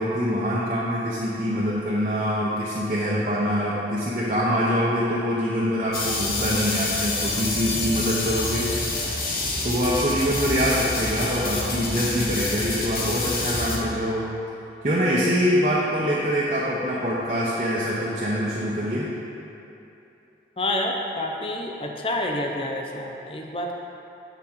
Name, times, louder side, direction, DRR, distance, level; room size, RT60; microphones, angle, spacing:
voice 1, 0.0-8.7 9.6-14.3 14.8-19.1, equal, 40° right, -7 dB, 0.7 m, -24 dB
sound 1, 5.9-13.8, left 2 dB, 55° left, 0.9 m, -27 dB
voice 2, 20.6-23.7, left 1 dB, 30° left, 1 dB, 0.6 m, -28 dB
7.7 x 7.0 x 3.7 m, 2.9 s
head